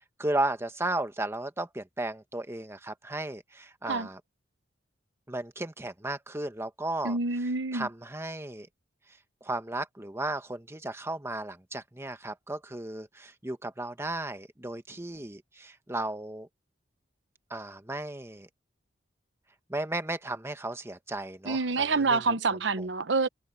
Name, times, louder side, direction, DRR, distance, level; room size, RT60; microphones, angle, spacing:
voice 1, 0.2-4.2 5.3-7.2 7.7-8.7 9.4-16.5 17.5-18.5 19.7-22.2 22.8-22.9, right 2 dB, 15° right, 1.2 m, -34 dB
voice 2, 7.0-7.9 21.4-23.3, right 3 dB, 70° right, 0.9 m, -27 dB
head